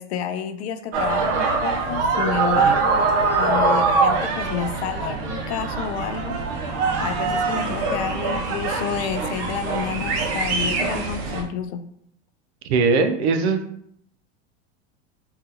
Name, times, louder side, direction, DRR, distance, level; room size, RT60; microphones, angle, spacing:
voice 1, 0.0-3.1 3.3-11.8, left 8 dB, 85° left, 10 dB, 0.5 m, -30 dB
sound 1, 0.9-11.4, right 4 dB, 45° right, 0.7 m, -23 dB
voice 2, 12.7-13.6, right 4 dB, 85° right, 6 dB, 0.6 m, -20 dB
3.6 x 2.4 x 2.8 m, 0.67 s
supercardioid pair, 130°, 32 cm